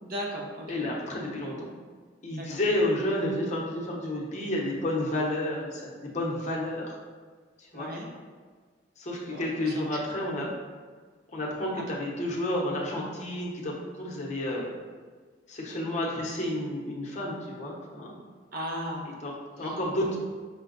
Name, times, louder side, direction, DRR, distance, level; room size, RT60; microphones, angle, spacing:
voice 1, 0.0-0.7 2.4-2.5 7.7-8.1 9.3-10.0 11.8-11.9 18.5-19.1 19.6-19.7, equal, 55° right, -1 dB, 0.8 m, -36 dB
voice 2, 0.7-1.7 2.2-6.9 7.7-7.9 9.0-10.5 11.3-14.7 15.5-18.1 19.1-20.2, left 1 dB, 40° left, -3 dB, 0.9 m, -31 dB
5.8 x 2.3 x 3.9 m, 1.5 s
head